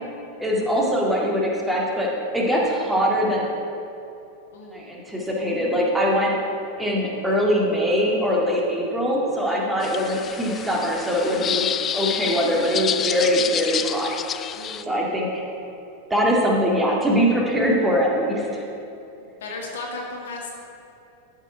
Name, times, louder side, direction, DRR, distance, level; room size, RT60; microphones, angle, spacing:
voice 1, 0.4-3.5 4.7-6.3 6.8-11.7 11.9-14.1 14.8-15.5 16.1-18.6, equal, 5° right, -3 dB, 2.1 m, -22 dB
voice 2, 4.5-4.9 9.5-10.1 14.5-15.3 19.2-20.5, left 2 dB, 60° left, -1 dB, 2.0 m, -37 dB
sound 1, 9.8-14.8, left 8 dB, 25° left, 0.4 m, -28 dB
13.0 x 6.7 x 4.6 m, 2.9 s
figure-of-eight pair, 90°, 0 cm